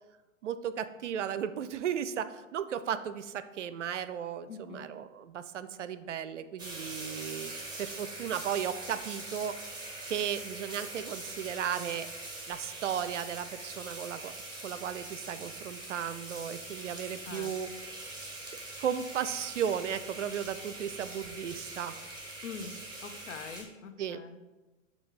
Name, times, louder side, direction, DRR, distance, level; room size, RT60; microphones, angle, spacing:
voice 1, 0.4-7.5 7.8-9.6 10.1-12.1 12.5-14.3 14.6-18.1 18.8-22.0 24.0-24.2, right 8 dB, 65° right, 13 dB, 0.5 m, -35 dB
voice 2, 4.5-4.9 17.3-17.5 22.4-22.7 23.0-24.4, left 6 dB, 65° left, 8 dB, 0.7 m, -43 dB
sound 1, 6.6-23.6, right 2 dB, 10° right, 1.2 m, -43 dB
6.9 x 2.8 x 4.9 m, 1.2 s
figure-of-eight pair, 100°, 39 cm